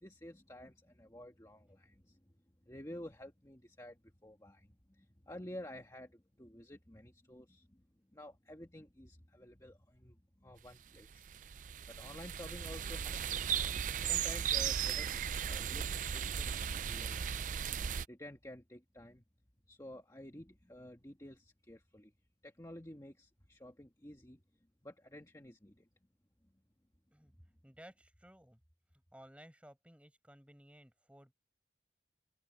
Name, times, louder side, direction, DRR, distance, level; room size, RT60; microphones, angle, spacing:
voice 1, 0.0-2.2 2.7-7.8 8.1-11.3 11.9-15.9 16.1-17.3 18.1-19.2 19.7-22.1 22.4-24.4 24.8-25.9, left 1 dB, 15° left, 1.5 m, -51 dB
sound 1, 11.0-18.1, right 8 dB, 40° right, 0.4 m, -36 dB
voice 2, 27.6-28.6 28.9-31.3, equal, 5° right, 7.9 m, -58 dB
open air
head